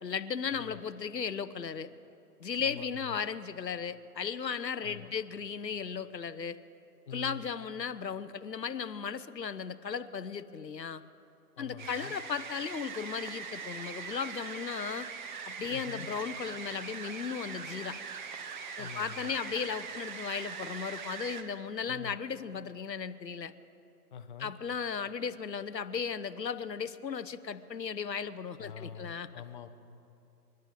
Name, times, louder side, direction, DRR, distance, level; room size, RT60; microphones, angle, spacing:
voice 1, 0.0-1.9 2.4-6.6 7.1-11.0 11.6-15.1 15.5-18.0 18.8-23.5 24.4-29.3, left 6 dB, 85° left, 13 dB, 0.8 m, -36 dB
voice 2, 0.5-0.8 2.6-3.1 4.8-5.1 7.1-7.5 11.6-12.1 15.7-16.1 18.8-19.3 21.8-22.2 24.1-24.5 28.6-29.7, left 6 dB, 30° left, 8 dB, 0.6 m, -45 dB
sound 1, 11.8-21.4, right 6 dB, 30° right, 0.9 m, -41 dB
29.0 x 12.0 x 3.7 m, 2.7 s
figure-of-eight pair, 130°, 49 cm